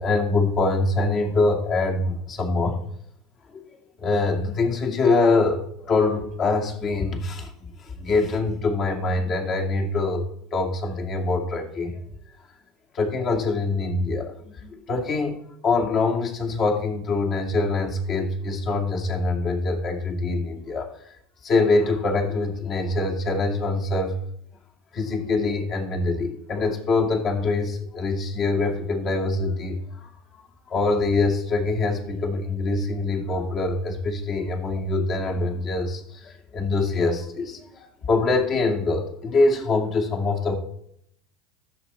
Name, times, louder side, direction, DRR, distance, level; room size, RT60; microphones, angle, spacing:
voice 1, 0.0-2.8 4.0-7.5 8.0-11.9 12.9-14.3 14.6-15.4 15.6-20.9 21.4-24.1 24.9-30.1 30.4-37.6 38.1-40.6, left 3 dB, 45° left, 2 dB, 2.6 m, -24 dB
13.5 x 6.8 x 4.4 m, 0.69 s
hypercardioid pair, 75°, 0 cm